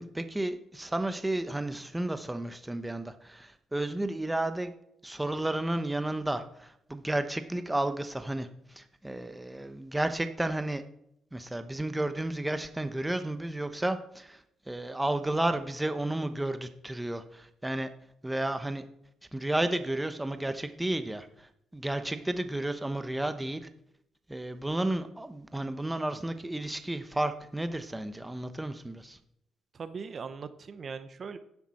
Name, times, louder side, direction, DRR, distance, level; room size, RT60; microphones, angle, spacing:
voice 1, 0.0-4.7 5.0-10.8 11.3-17.9 18.2-18.9 19.3-23.7 24.3-29.2, right 1 dB, 10° right, 9 dB, 0.9 m, -32 dB
voice 2, 29.7-31.4, right 5 dB, 45° right, 11 dB, 0.9 m, -40 dB
10.5 x 10.0 x 4.3 m, 0.76 s
cardioid pair, 90°, 0 cm